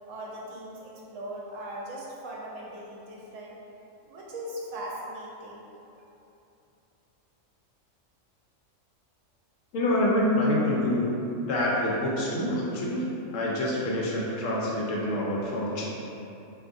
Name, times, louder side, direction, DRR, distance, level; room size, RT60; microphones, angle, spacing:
voice 1, 0.1-3.6 4.0-5.7 5.9-6.0, right 1 dB, 80° right, -4 dB, 1.0 m, -39 dB
voice 2, 9.7-15.8, left 1 dB, 75° left, -4 dB, 1.0 m, -26 dB
3.5 x 2.6 x 2.5 m, 2.8 s
omnidirectional pair, 1.4 m